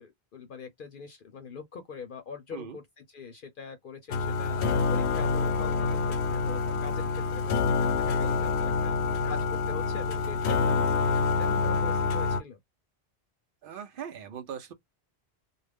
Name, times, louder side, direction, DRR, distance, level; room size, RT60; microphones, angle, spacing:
voice 1, 0.0-2.8 3.1-12.6, left 5 dB, 60° left, 0.7 m, -43 dB
sound 1, 4.1-12.4, left 4 dB, 90° left, 0.9 m, -27 dB
voice 2, 13.6-14.7, right 8 dB, 60° right, 0.8 m, -40 dB
2.4 x 2.1 x 3.3 m
omnidirectional pair, 1.1 m